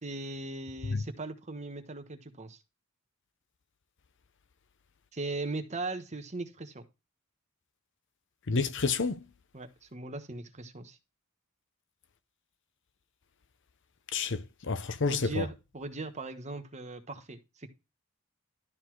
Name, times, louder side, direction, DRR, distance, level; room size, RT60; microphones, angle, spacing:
voice 1, 0.0-2.6 5.1-6.8 9.5-11.0 15.0-17.7, right 2 dB, 30° right, 1.2 m, -39 dB
voice 2, 8.5-9.2 14.1-15.5, left 4 dB, 55° left, 0.8 m, -29 dB
12.5 x 4.1 x 4.6 m
head